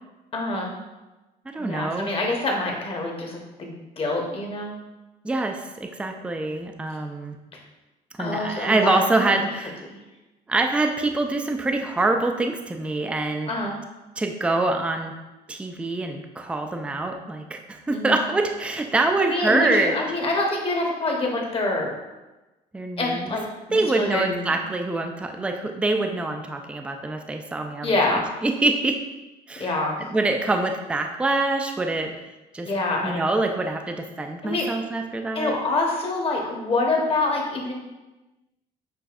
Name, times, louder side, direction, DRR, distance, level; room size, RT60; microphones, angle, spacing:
voice 1, 0.3-0.7 1.6-4.7 8.2-9.4 9.9-10.0 13.5-13.8 17.9-18.2 19.3-21.9 23.0-23.4 23.7-24.7 27.8-28.4 29.6-30.0 32.6-33.2 34.4-34.7 35.3-37.7, left 2 dB, 35° left, 0 dB, 0.9 m, -26 dB
voice 2, 1.5-2.1 5.2-7.4 8.2-9.8 10.5-13.5 14.2-15.1 15.5-20.0 22.7-23.4 23.7-29.0 29.5-29.7 30.1-32.2 32.5-32.7 33.0-35.6, right 2 dB, 5° right, 4 dB, 0.3 m, -25 dB
6.7 x 2.6 x 2.4 m, 1.1 s
cardioid pair, 110°, 17 cm